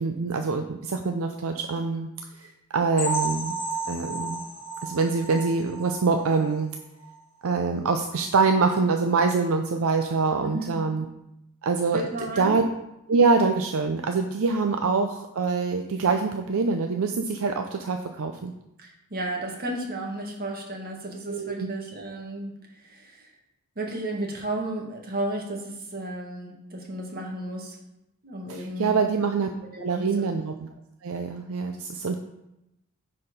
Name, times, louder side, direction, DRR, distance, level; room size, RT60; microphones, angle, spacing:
voice 1, 0.0-2.1 2.3-3.6 3.9-4.4 4.8-6.7 7.4-11.0 11.6-12.0 12.4-12.6 13.1-18.5 21.3-21.7 28.5-29.5 29.8-30.5 31.0-32.1, right 4 dB, 65° right, 5 dB, 0.5 m, -25 dB
sound 1, 3.0-6.6 7.0-7.2 7.5-7.6 8.1-8.2, right 2 dB, 25° left, 1.9 m, -33 dB
voice 2, 10.4-10.8 11.9-12.5 18.8-23.3 23.8-27.8 28.2-29.0 29.7-30.2, right 1 dB, 45° right, 0 dB, 1.6 m, -33 dB
9.7 x 4.3 x 5.1 m, 0.89 s
head